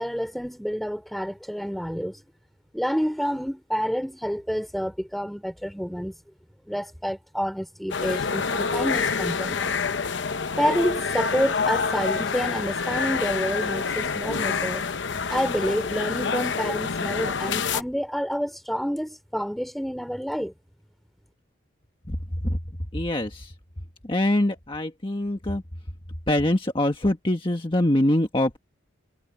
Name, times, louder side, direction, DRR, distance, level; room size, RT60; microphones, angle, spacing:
voice 1, 0.0-2.2 2.7-6.1 6.7-9.8 10.6-14.8 15.3-20.5, equal, ahead, 3.1 m, -28 dB
sound 1, 7.9-17.8, left 5 dB, 65° left, 0.8 m, -27 dB
voice 2, 22.9-23.5 24.0-25.6 26.3-28.6, left 1 dB, 25° left, 1.5 m, -24 dB
head